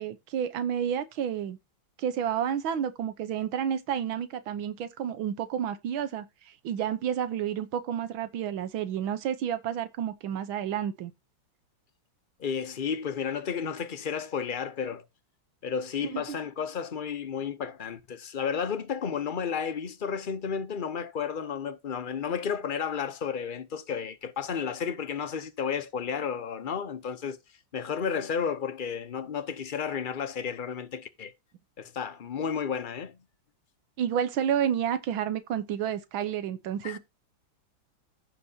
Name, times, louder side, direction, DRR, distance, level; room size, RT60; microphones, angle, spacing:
voice 1, 0.0-1.6 2.0-11.1 16.0-16.4 34.0-37.0, right 9 dB, 90° right, 1.7 m, -30 dB
voice 2, 12.4-15.0 15.6-27.4 27.7-31.3 31.8-33.2 36.8-37.0, left 7 dB, 70° left, 0.4 m, -32 dB
15.0 x 5.8 x 2.8 m
omnidirectional pair, 2.1 m